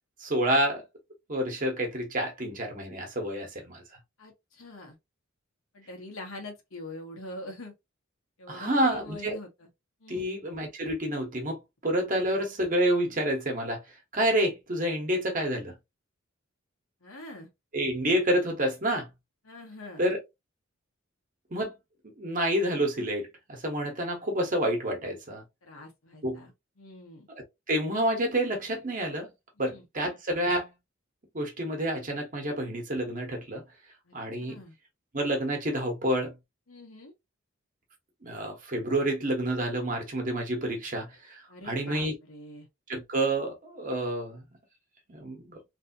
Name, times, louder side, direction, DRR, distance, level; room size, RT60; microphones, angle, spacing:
voice 1, 0.2-0.8 1.3-3.8 8.5-9.4 10.1-13.8 14.1-15.7 17.7-19.1 20.0-20.2 21.5-21.7 22.2-25.4 26.2-26.4 27.7-29.3 29.6-30.7 31.3-33.6 34.1-34.6 35.1-36.3 38.2-42.2 42.9-44.4 45.1-45.6, right 1 dB, 40° right, 1.1 m, -28 dB
voice 2, 4.2-5.0 5.7-7.7 8.4-9.7 10.0-10.4 17.0-17.5 19.4-20.0 25.6-26.5 26.8-27.3 29.6-29.8 34.1-34.2 34.5-34.7 36.7-37.1 41.5-42.7, left 2 dB, 90° left, 1.4 m, -44 dB
3.3 x 2.7 x 2.6 m
head